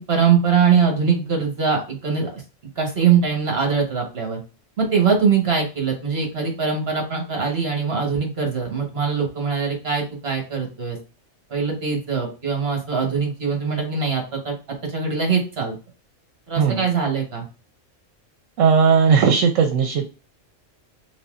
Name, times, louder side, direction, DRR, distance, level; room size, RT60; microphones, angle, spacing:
voice 1, 0.1-2.4 2.8-4.4 4.8-11.0 11.5-14.6 14.9-15.7 16.5-17.4, right 6 dB, 55° right, 1 dB, 1.4 m, -22 dB
voice 2, 18.6-20.1, right 6 dB, 80° right, 5 dB, 1.0 m, -17 dB
4.1 x 3.8 x 2.4 m, 0.32 s
omnidirectional pair, 1.3 m